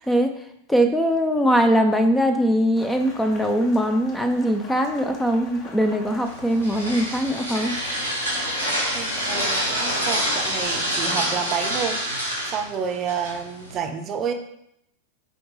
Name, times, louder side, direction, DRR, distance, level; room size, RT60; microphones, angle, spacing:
voice 1, 0.7-7.8, equal, 5° left, 6 dB, 0.6 m, -21 dB
Rain, 2.8-10.7, left 3 dB, 35° left, 1.3 m, -43 dB
sound 1, 6.3-13.8, equal, 90° left, 2.0 m, -27 dB
voice 2, 8.9-14.3, right 7 dB, 30° right, 6 dB, 0.7 m, -30 dB
6.8 x 4.7 x 3.7 m, 0.76 s
figure-of-eight pair, 90°, 0 cm